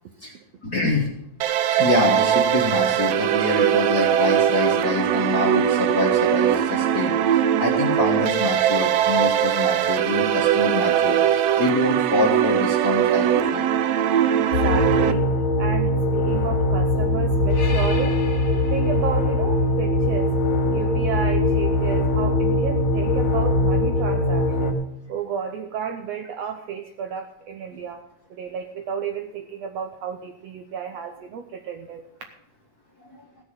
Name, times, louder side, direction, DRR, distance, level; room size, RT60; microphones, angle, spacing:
voice 1, 0.6-1.1 1.7-13.7, left 2 dB, 45° left, -1 dB, 1.3 m, -25 dB
sound 1, 1.4-15.1, right 10 dB, 85° right, 1.4 m, -21 dB
voice 2, 14.3-15.3 15.6-18.2 18.7-20.3 20.7-24.8 25.1-28.0 28.3-32.0, right 7 dB, 70° right, 5 dB, 1.6 m, -32 dB
sound 2, 14.5-24.7, left 1 dB, 85° left, 3.5 m, -21 dB
16.5 x 6.7 x 7.4 m, 0.83 s
omnidirectional pair, 3.7 m